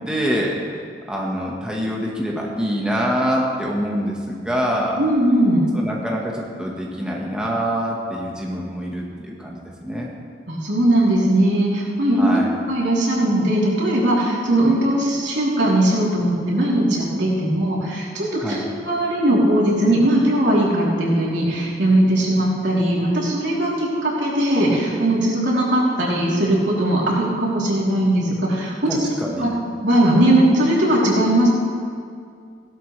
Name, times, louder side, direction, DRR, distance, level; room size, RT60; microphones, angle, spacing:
voice 1, 0.1-5.0 5.7-10.1 12.2-12.5 18.4-18.6 28.9-29.5, equal, 5° right, -3 dB, 1.4 m, -25 dB
voice 2, 5.0-5.6 10.5-12.4 12.7-28.9 29.4-29.5 29.8-31.5, right 1 dB, 90° right, -5 dB, 3.4 m, -19 dB
16.5 x 12.0 x 3.3 m, 2.2 s
head